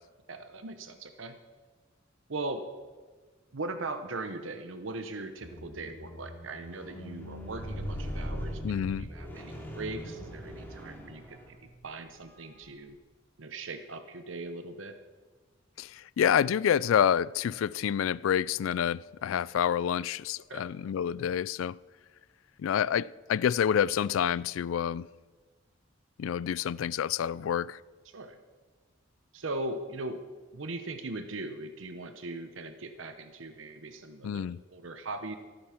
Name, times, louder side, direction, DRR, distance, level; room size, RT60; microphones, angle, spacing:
voice 1, 0.3-1.4 2.3-2.6 3.5-13.0 13.4-14.9 20.5-20.6 28.0-28.4 29.3-30.2 30.5-35.4, right 2 dB, 75° right, 0.9 m, -39 dB
Squeak, 5.4-11.8 12.5-12.7, equal, 10° left, 3.2 m, -40 dB
voice 2, 8.6-9.1 15.8-21.8 22.6-25.1 26.2-27.8 34.2-34.6, left 8 dB, 85° left, 0.3 m, -28 dB
14.0 x 12.0 x 5.9 m
head